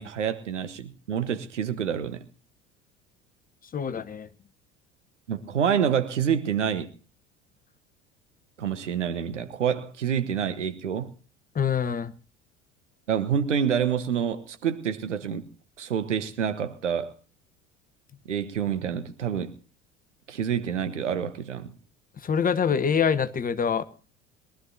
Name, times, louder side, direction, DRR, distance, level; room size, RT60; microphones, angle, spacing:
voice 1, 0.0-2.2 5.3-6.9 8.6-11.1 13.1-15.4 15.8-17.1 18.3-19.5 20.3-21.7, right 8 dB, 80° right, 1.2 m, -27 dB
voice 2, 3.7-4.3 11.5-12.1 22.2-23.8, left 7 dB, 25° left, 1.0 m, -25 dB
22.5 x 12.5 x 2.7 m
figure-of-eight pair, 65°, 36 cm